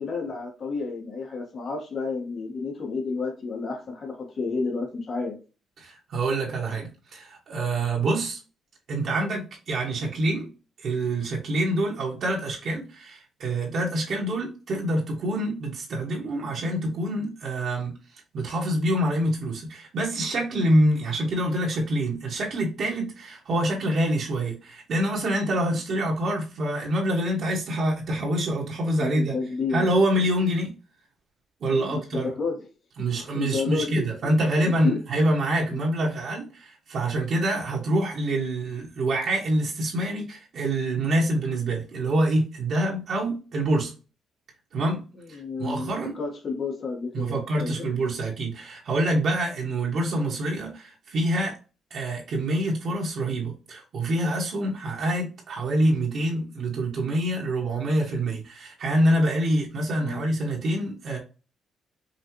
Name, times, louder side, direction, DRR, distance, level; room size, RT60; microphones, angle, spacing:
voice 1, 0.0-5.4 25.9-26.0 29.0-29.8 31.7-32.6 33.3-34.3 34.6-35.0 35.7-35.9 45.1-47.8 60.0-60.2, left 4 dB, 45° left, 1.5 m, -31 dB
voice 2, 5.8-8.4 8.9-10.5 10.8-18.0 18.3-29.3 29.7-30.7 31.6-32.3 33.0-43.9 44.7-45.0 45.3-46.2 47.1-51.5 51.9-61.2, right 1 dB, 60° right, 1.5 m, -26 dB
5.5 x 2.4 x 3.0 m
cardioid pair, 90°, 0 cm